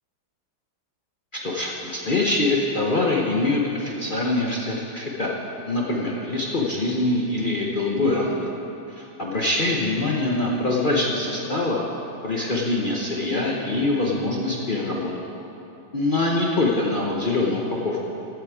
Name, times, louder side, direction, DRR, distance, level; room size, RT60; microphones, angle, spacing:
voice 1, 1.3-5.3 5.6-8.5 8.9-11.8 12.2-15.1 15.9-18.0, left 2 dB, 50° left, -3 dB, 0.6 m, -24 dB
15.5 x 8.1 x 4.9 m, 2.9 s
omnidirectional pair, 2.2 m